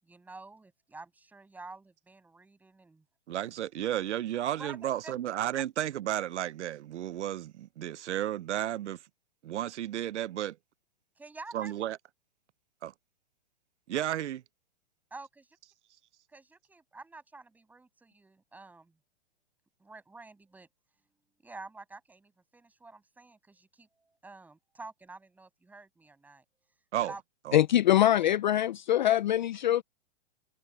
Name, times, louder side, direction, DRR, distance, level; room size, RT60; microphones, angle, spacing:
voice 1, 0.0-3.0 4.6-5.1 11.2-11.8 15.1-15.4 16.3-18.9 19.8-20.7 21.4-26.4 27.0-27.2, right 3 dB, 5° right, 7.2 m, -49 dB
voice 2, 3.3-9.0 9.4-10.6 11.5-12.0 12.8-12.9 13.9-14.4 26.9-27.1 27.4-27.6, right 12 dB, 80° right, 0.7 m, -33 dB
voice 3, 27.5-29.8, left 12 dB, 45° left, 0.5 m, -23 dB
hypercardioid pair, 165°, 34 cm